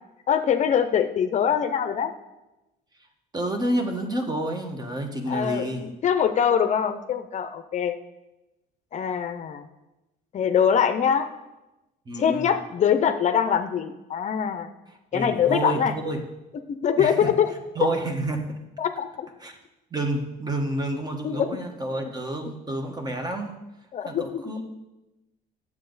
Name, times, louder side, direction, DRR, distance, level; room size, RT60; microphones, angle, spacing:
voice 1, 0.3-2.1 5.3-8.0 8.9-9.7 10.3-11.3 12.2-14.7 15.1-15.9 16.8-17.5 18.8-19.3 21.2-21.6 23.9-24.4, left 8 dB, 45° left, 9 dB, 0.6 m, -23 dB
voice 2, 3.3-5.9 12.1-12.5 15.1-16.2 17.0-17.3 17.7-18.6 19.4-19.6 19.9-23.6 24.0-24.6, right 1 dB, 25° right, 5 dB, 1.3 m, -29 dB
10.0 x 7.4 x 4.0 m, 1.0 s
cardioid pair, 110°, 17 cm